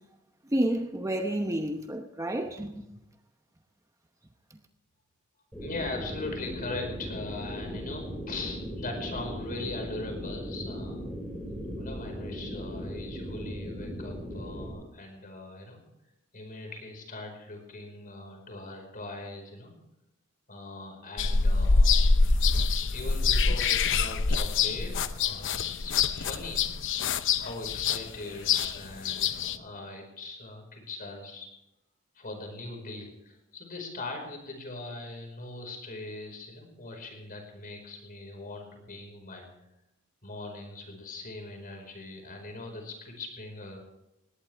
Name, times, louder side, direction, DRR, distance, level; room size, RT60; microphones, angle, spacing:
voice 1, 0.5-3.0, right 1 dB, 15° right, 0.9 m, -30 dB
sound 1, 5.5-14.7, equal, 5° left, 5.5 m, -38 dB
voice 2, 5.6-11.1 11.8-15.8 16.3-19.7 20.5-22.1 22.9-26.6 27.4-31.5 32.1-39.5 40.2-43.8, left 2 dB, 40° left, 5.0 m, -40 dB
sound 2, 21.2-29.6, left 4 dB, 60° left, 0.8 m, -25 dB
19.5 x 18.0 x 3.5 m
head